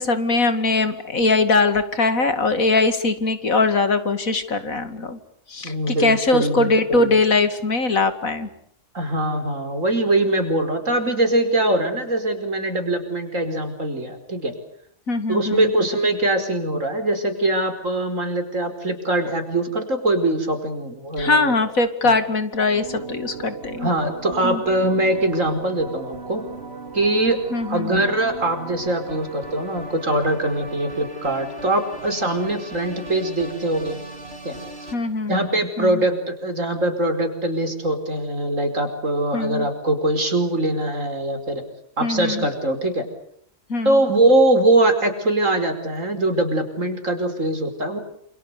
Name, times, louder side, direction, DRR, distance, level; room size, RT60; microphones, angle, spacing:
voice 1, 0.0-5.2 5.5-8.5 15.1-15.7 21.2-23.9 24.4-24.6 27.5-27.9 34.9-35.4 35.8-36.0 39.3-39.7 42.0-42.5 43.7-44.0, left 3 dB, 80° left, 10 dB, 2.8 m, -21 dB
voice 2, 5.6-7.2 8.9-14.5 15.3-21.5 22.0-22.1 23.8-26.4 26.9-27.4 27.7-34.0 34.4-34.6 35.3-41.6 42.0-43.1 43.9-48.0, right 1 dB, 65° right, 7 dB, 5.3 m, -22 dB
sound 1, 22.7-34.9, right 3 dB, 45° right, 3.7 m, -37 dB
28.5 x 28.0 x 6.8 m, 0.69 s
omnidirectional pair, 1.4 m